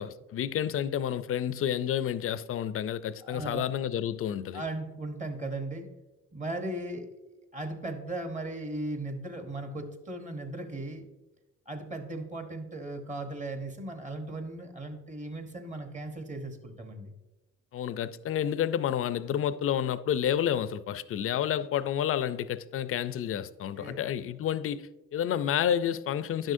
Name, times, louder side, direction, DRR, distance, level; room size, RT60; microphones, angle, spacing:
voice 1, 0.0-4.6 17.7-26.5, left 10 dB, 50° left, 0.4 m, -30 dB
voice 2, 3.2-3.6 4.5-5.9 6.3-7.1 7.5-11.1 11.7-17.1 23.8-24.0, right 2 dB, 25° right, 1.0 m, -37 dB
10.0 x 6.3 x 2.6 m
cardioid pair, 90°, 30 cm